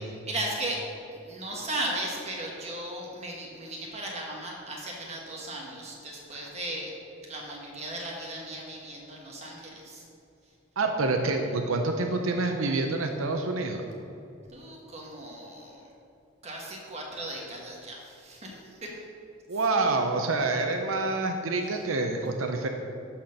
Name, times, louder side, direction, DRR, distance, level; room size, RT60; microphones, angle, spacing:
voice 1, 0.3-0.8 1.1-6.9 7.3-10.0 14.5-15.8 16.4-18.9, right 1 dB, 30° right, -2 dB, 1.4 m, -36 dB
voice 2, 10.8-13.8 19.5-22.7, right 3 dB, 85° right, 4 dB, 0.7 m, -27 dB
11.5 x 4.4 x 6.5 m, 2.8 s
head